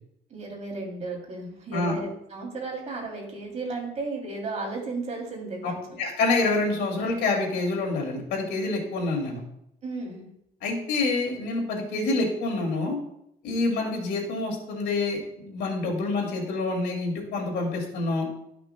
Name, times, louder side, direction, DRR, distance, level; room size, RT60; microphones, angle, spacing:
voice 1, 0.3-6.0 9.8-10.3, right 3 dB, 40° right, 0 dB, 2.9 m, -34 dB
voice 2, 6.0-9.4 10.6-13.0 13.4-18.3, left 3 dB, 80° left, 0 dB, 2.5 m, -27 dB
13.0 x 5.9 x 2.2 m, 0.78 s
cardioid pair, 110°, 17 cm